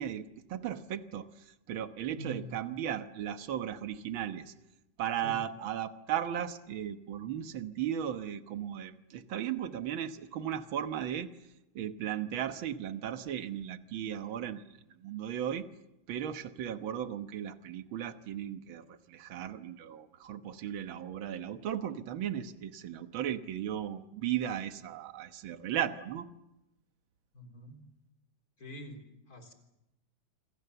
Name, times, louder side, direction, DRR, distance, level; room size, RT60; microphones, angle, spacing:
voice 1, 0.0-4.5 5.0-11.3 11.7-14.7 15.0-15.7 16.1-26.3, right 10 dB, 55° right, 9 dB, 1.4 m, -36 dB
voice 2, 2.2-2.6 5.2-5.5 27.3-27.8 28.6-29.5, equal, 25° left, 5 dB, 4.1 m, -45 dB
27.5 x 26.0 x 7.0 m, 0.93 s
omnidirectional pair, 3.8 m